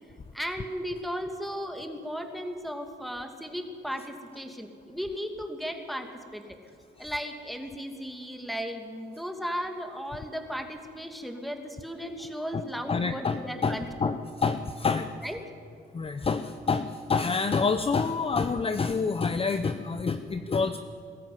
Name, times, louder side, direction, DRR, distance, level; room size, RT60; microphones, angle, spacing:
voice 1, 0.3-6.6 7.0-14.1 15.2-15.4, equal, ahead, 5 dB, 2.5 m, -36 dB
voice 2, 12.9-15.1 15.9-20.8, left 4 dB, 30° left, 9 dB, 0.8 m, -27 dB
21.0 x 13.0 x 9.5 m, 2.3 s
cardioid pair, 90°, 20 cm